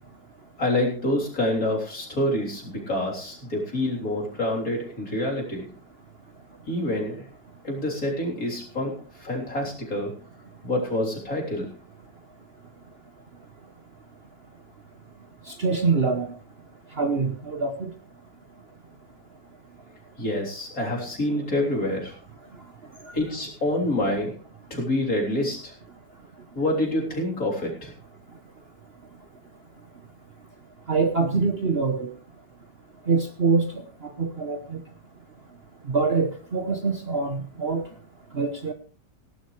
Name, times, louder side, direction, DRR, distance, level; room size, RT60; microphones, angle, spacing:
voice 1, 0.6-5.6 6.7-7.3 7.6-10.2 10.6-11.7 20.2-22.2 23.1-24.4 24.7-25.7 26.5-27.9, left 1 dB, 55° left, -1 dB, 4.0 m, -27 dB
voice 2, 15.5-16.3 17.0-17.9 30.9-32.1 33.1-34.8 35.9-37.8 38.3-38.7, right 4 dB, 40° right, 6 dB, 1.1 m, -25 dB
18.0 x 11.5 x 3.2 m, 0.39 s
omnidirectional pair, 1.8 m